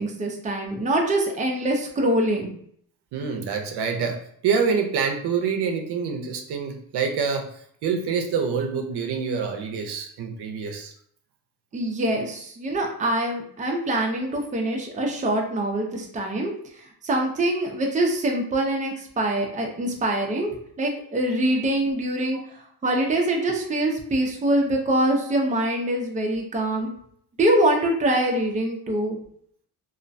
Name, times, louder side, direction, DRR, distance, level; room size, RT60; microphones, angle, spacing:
voice 1, 0.0-2.5 11.7-16.5 17.0-20.5 20.8-22.4 22.8-26.9 27.4-29.2, right 1 dB, 20° right, 1 dB, 0.5 m, -24 dB
voice 2, 3.1-7.5 7.8-10.9 22.3-22.4, right 5 dB, 75° right, 4 dB, 0.5 m, -26 dB
2.4 x 2.1 x 2.5 m, 0.64 s
cardioid pair, 95°, 40 cm